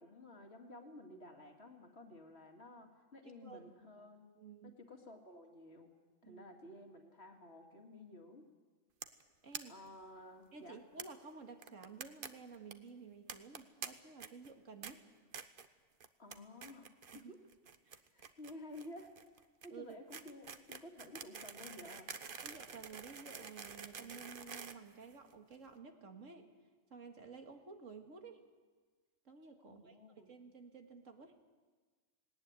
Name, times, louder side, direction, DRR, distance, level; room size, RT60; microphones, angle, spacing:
voice 1, 0.0-4.3 4.6-5.9 6.2-8.5 9.7-10.8 16.2-17.4 18.0-22.2 29.6-30.3, left 1 dB, 55° left, 3 dB, 2.6 m, -53 dB
voice 2, 3.4-3.7 4.4-4.8 6.2-6.4 9.4-9.8 10.5-15.0 17.1-17.3 17.8-18.0 19.7-20.0 22.4-26.5 26.9-28.4 29.2-31.4, right 5 dB, 85° right, 4 dB, 2.3 m, -53 dB
sound 1, 9.0-9.2 9.5-9.6 9.9-10.0 10.2-10.3 11.0-11.1 11.6-12.3 12.5-12.7 13.3-13.9 14.2-14.5 14.8-14.9 15.3-15.7 16.0-16.4 16.6-17.2 17.5-25.5, right 6 dB, 45° right, 1.1 m, -47 dB
19.0 x 18.5 x 9.7 m, 1.4 s
omnidirectional pair, 1.3 m